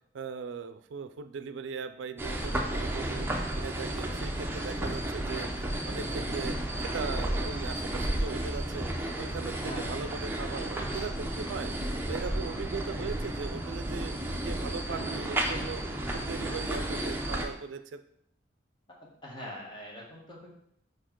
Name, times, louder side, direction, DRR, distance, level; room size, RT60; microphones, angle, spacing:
voice 1, 0.1-3.3 3.5-5.5 5.9-8.9 9.2-11.7 12.1-14.1 14.4-15.8 16.1-18.0, right 5 dB, 75° right, 10 dB, 0.4 m, -39 dB
sound 1, 2.2-17.5, right 1 dB, 10° right, 0.6 m, -33 dB
voice 2, 9.5-10.0 12.6-12.7 14.8-15.0 19.0-20.5, equal, 25° left, -2 dB, 1.4 m, -44 dB
5.0 x 4.4 x 4.4 m, 0.71 s
head